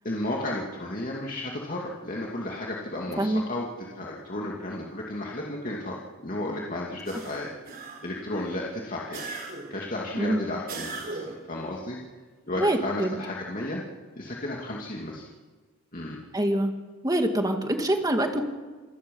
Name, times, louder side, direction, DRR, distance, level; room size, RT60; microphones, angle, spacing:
voice 1, 0.0-9.4 9.7-12.0 12.4-13.8 14.2-15.2 15.9-16.2, left 1 dB, 40° left, -3 dB, 2.6 m, -33 dB
sound 1, 7.0-8.3 9.1-9.9 10.7-11.5, right 3 dB, 45° right, 4.2 m, -38 dB
voice 2, 12.6-13.2 16.3-16.7 17.0-18.4, right 1 dB, 20° right, 5 dB, 2.0 m, -25 dB
27.5 x 19.0 x 5.6 m, 1.4 s
head